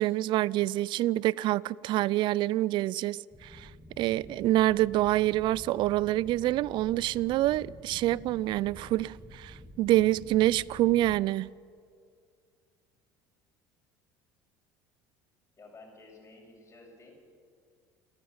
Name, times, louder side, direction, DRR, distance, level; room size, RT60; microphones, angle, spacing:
voice 1, 0.0-3.7 4.0-11.5, right 15 dB, 55° right, 0.4 m, -26 dB
sound 1, 3.3-11.2, left 1 dB, ahead, 1.8 m, -49 dB
voice 2, 15.5-17.1, left 3 dB, 25° left, 5.9 m, -52 dB
29.0 x 9.7 x 9.6 m
hypercardioid pair, 75°, 10 cm